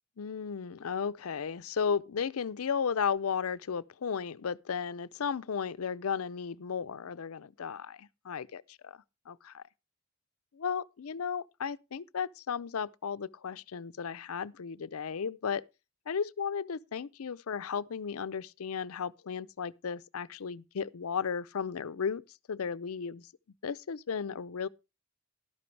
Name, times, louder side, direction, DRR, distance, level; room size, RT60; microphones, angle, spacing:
voice 1, 0.2-9.0 9.3-9.6 10.5-15.6 16.1-22.2 22.5-23.3 23.6-24.7, left 6 dB, 90° left, 0.5 m, -34 dB
12.0 x 12.0 x 3.2 m
head